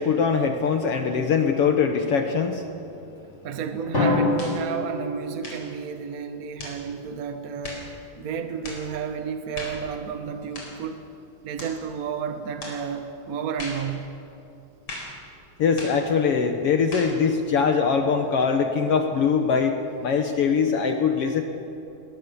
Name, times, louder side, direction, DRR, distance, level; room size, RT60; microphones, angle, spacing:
voice 1, 0.0-3.3 15.6-21.4, left 6 dB, 60° left, 6 dB, 1.7 m, -22 dB
voice 2, 3.4-7.9 8.2-11.1 11.4-14.2, right 6 dB, 50° right, 8 dB, 1.0 m, -32 dB
Drum, 3.9-6.0, left 2 dB, 20° left, 5.4 m, -25 dB
sound 1, 4.4-4.6 5.4-5.7 6.6-6.8 7.6-7.9 8.6-8.9 9.5-9.8 10.5-10.8 11.6-11.8 12.6-12.8 13.6-13.9 14.9-15.2 15.8-16.0 16.9-17.2, left 2 dB, 40° left, 5.2 m, -37 dB
21.5 x 20.0 x 7.0 m, 2.7 s
omnidirectional pair, 3.7 m